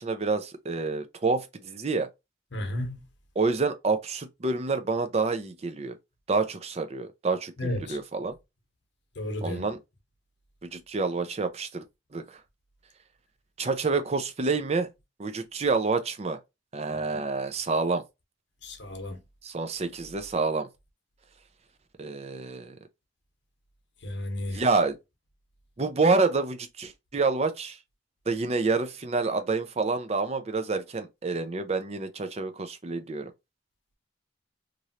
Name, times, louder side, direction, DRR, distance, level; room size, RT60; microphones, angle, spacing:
voice 1, 0.0-2.1 3.4-6.0 6.3-8.4 9.4-9.8 10.6-11.8 12.1-12.2 13.6-14.9 15.2-16.4 16.7-18.0 19.4-20.7 22.0-22.8 24.5-25.0 25.8-27.8 28.3-33.3, right 3 dB, 35° right, 0.4 m, -28 dB
voice 2, 2.5-3.0 7.6-8.0 9.2-9.6 17.1-17.2 18.6-19.2 24.0-24.6, left 1 dB, 65° left, 1.0 m, -33 dB
3.1 x 2.6 x 2.7 m
head